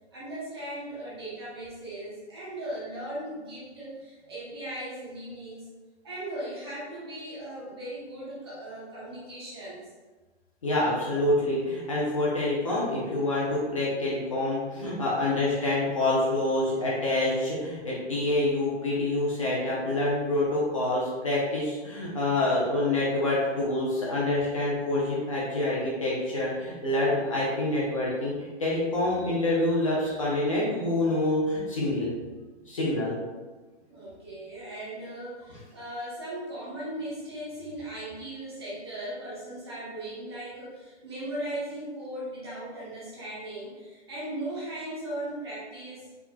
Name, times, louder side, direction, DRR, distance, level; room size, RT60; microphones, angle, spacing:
voice 1, 0.1-5.7 6.0-9.8 32.5-32.7 33.9-46.1, right 1 dB, 20° right, -8 dB, 0.9 m, -38 dB
voice 2, 10.6-32.1 32.7-33.1, left 2 dB, 30° left, -6 dB, 0.8 m, -27 dB
4.5 x 4.2 x 2.3 m, 1.3 s
hypercardioid pair, 170°, 35 cm